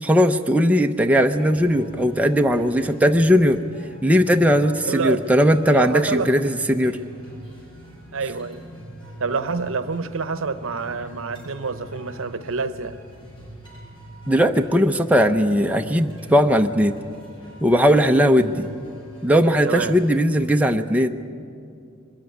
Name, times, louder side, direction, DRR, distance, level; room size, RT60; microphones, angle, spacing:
voice 1, 0.0-3.6 4.0-7.0 14.3-17.0 17.6-18.7 19.2-21.1, equal, 5° right, 4 dB, 0.6 m, -18 dB
sound 1, 1.2-20.5, right 1 dB, 25° left, 7.0 m, -43 dB
voice 2, 4.9-5.2 5.7-6.4 8.1-8.7 9.2-13.0 19.6-20.0, right 4 dB, 70° right, 12 dB, 0.8 m, -27 dB
22.5 x 14.0 x 9.6 m, 2.4 s
head